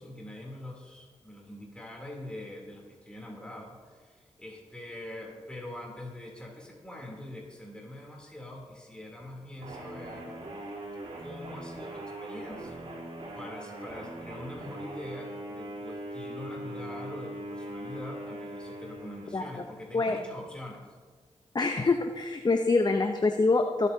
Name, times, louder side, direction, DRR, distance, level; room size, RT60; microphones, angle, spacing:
voice 1, 0.0-10.7 11.2-12.9 13.3-20.9, left 1 dB, 10° left, -2 dB, 3.2 m, -44 dB
sound 1, 9.6-19.9, right 1 dB, 60° right, 3.4 m, -41 dB
voice 2, 21.5-23.9, left 3 dB, 35° left, 5 dB, 0.8 m, -25 dB
24.5 x 8.2 x 2.8 m, 1.5 s
cardioid pair, 45°, 12 cm